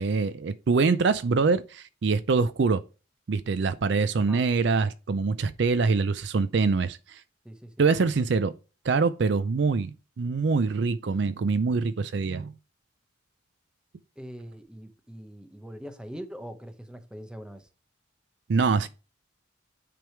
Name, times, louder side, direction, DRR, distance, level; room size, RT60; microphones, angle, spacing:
voice 1, 0.0-2.8 3.3-7.2 7.8-8.6 8.8-12.5 18.5-18.9, right 4 dB, 55° right, 0.4 m, -24 dB
voice 2, 14.2-17.7, equal, 5° right, 0.8 m, -42 dB
9.2 x 3.4 x 4.5 m
head